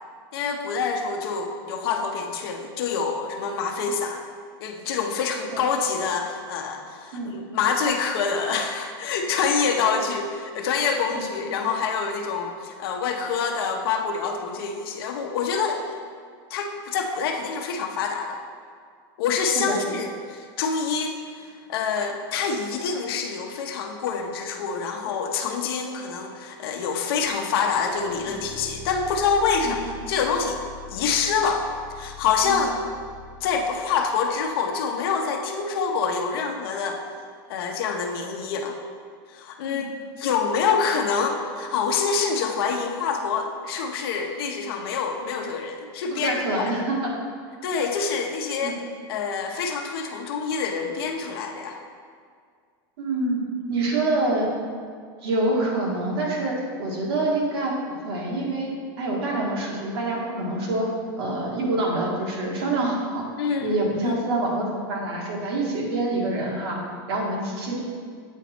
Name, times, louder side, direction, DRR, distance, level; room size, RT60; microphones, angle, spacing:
voice 1, 0.3-4.2 4.6-16.0 16.5-18.4 19.2-30.6 30.9-31.6 32.0-32.7 33.4-37.0 37.5-38.8 39.3-46.7 47.6-48.8 49.1-51.8 63.4-64.2, left 5 dB, 70° left, 3 dB, 0.8 m, -26 dB
sound 1, 27.3-34.5, left 5 dB, 10° left, 0.6 m, -43 dB
voice 2, 46.2-47.1 48.6-48.7 53.0-53.4 53.7-54.5 55.2-57.7 58.1-58.7 59.0-60.9 61.2-63.2 63.6-66.8 67.1-67.8, right 2 dB, 75° right, -2 dB, 1.8 m, -26 dB
8.2 x 4.1 x 4.3 m, 2.1 s
supercardioid pair, 155°, 13 cm